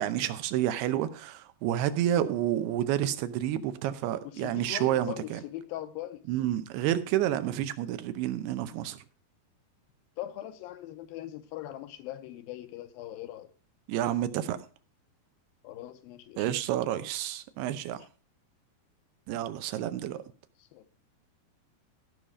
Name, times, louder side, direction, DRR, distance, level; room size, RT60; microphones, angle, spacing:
voice 1, 0.0-5.4 6.3-9.0 13.9-14.6 16.4-18.0 19.3-20.2, right 12 dB, 90° right, 2.8 m, -29 dB
voice 2, 4.2-6.2 10.2-13.5 15.6-16.5 20.6-20.8, left 13 dB, 75° left, 2.4 m, -41 dB
16.0 x 5.7 x 4.9 m
omnidirectional pair, 4.5 m